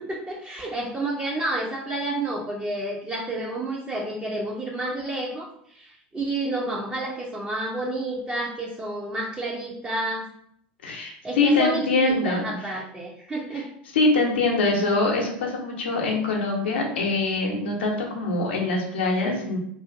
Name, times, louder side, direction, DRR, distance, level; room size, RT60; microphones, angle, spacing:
voice 1, 0.0-10.3 11.2-13.7, right 2 dB, 20° right, -3 dB, 0.5 m, -30 dB
voice 2, 10.8-12.6 13.5-13.6 13.9-19.6, left 3 dB, 80° left, 1 dB, 0.6 m, -24 dB
2.5 x 2.4 x 2.4 m, 0.70 s
hypercardioid pair, 75°, 6 cm